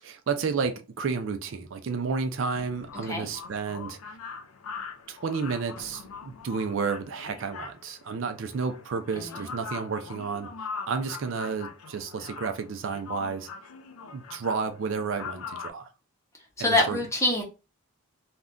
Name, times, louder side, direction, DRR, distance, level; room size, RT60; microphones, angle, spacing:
voice 1, 0.0-4.0 5.1-10.5 10.9-13.5 14.1-15.9 16.6-17.0, right 5 dB, 60° right, 0.4 m, -31 dB
sound 1, 2.4-15.7, left 5 dB, 75° left, 0.4 m, -42 dB
voice 2, 9.1-9.5 16.6-17.4, left 2 dB, 15° left, 0.7 m, -25 dB
2.5 x 2.1 x 3.5 m
head